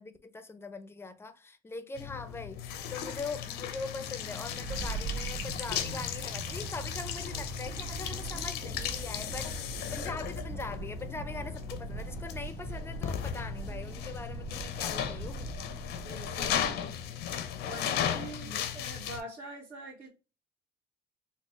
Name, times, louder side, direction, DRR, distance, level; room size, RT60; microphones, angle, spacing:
voice 1, 0.0-9.5 9.9-15.5 18.4-18.6, left 4 dB, 15° left, 0.5 m, -42 dB
sound 1, 2.0-19.2, left 9 dB, 75° left, 0.6 m, -36 dB
sound 2, 3.9-17.0, right 3 dB, 25° right, 1.3 m, -41 dB
voice 2, 16.0-17.0 17.7-20.1, right 1 dB, 65° right, 1.5 m, -44 dB
4.1 x 2.1 x 3.1 m
cardioid pair, 110°, 17 cm